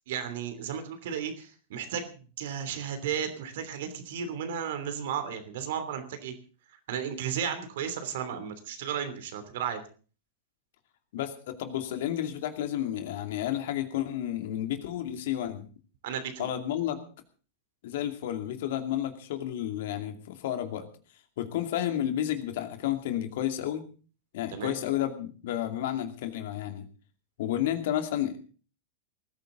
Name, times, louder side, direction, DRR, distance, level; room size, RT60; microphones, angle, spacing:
voice 1, 0.1-6.3 6.9-9.8 16.0-16.5 24.5-24.7, right 8 dB, 60° right, 9 dB, 3.0 m, -34 dB
voice 2, 11.1-15.7 16.4-17.0 17.8-20.9 21.4-23.8 24.3-26.9 27.4-28.4, left 11 dB, 60° left, 6 dB, 2.5 m, -31 dB
20.0 x 14.5 x 3.9 m, 0.38 s
figure-of-eight pair, 90°, 0 cm